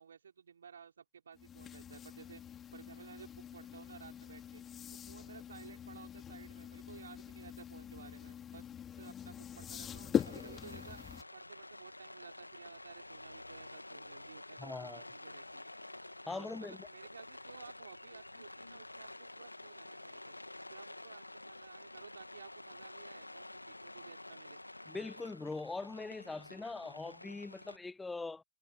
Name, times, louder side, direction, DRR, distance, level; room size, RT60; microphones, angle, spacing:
voice 1, 0.0-2.4 2.7-4.6 4.9-8.7 9.0-11.0 11.3-15.7 16.3-20.4 20.7-24.6, right 7 dB, 70° right, 4.8 m, -55 dB
sound 1, 1.4-11.2, left 9 dB, 25° left, 3.0 m, -42 dB
Rain, 10.2-27.8, left 2 dB, 85° left, 2.6 m, -50 dB
voice 2, 14.6-15.0 16.3-16.9 24.9-28.4, left 3 dB, 10° left, 0.5 m, -42 dB
figure-of-eight pair, 90°, 0 cm